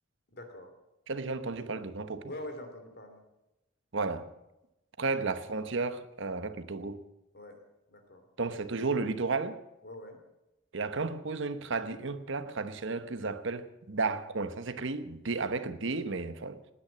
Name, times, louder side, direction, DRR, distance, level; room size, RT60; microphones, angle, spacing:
voice 1, 0.3-0.8 2.3-3.2 7.3-7.6 7.9-8.3 9.8-10.2, left 1 dB, 55° left, 3.1 m, -44 dB
voice 2, 1.1-2.3 3.9-4.3 5.0-7.0 8.4-9.6 10.7-16.6, right 3 dB, 65° right, 1.0 m, -33 dB
19.0 x 9.7 x 7.4 m
head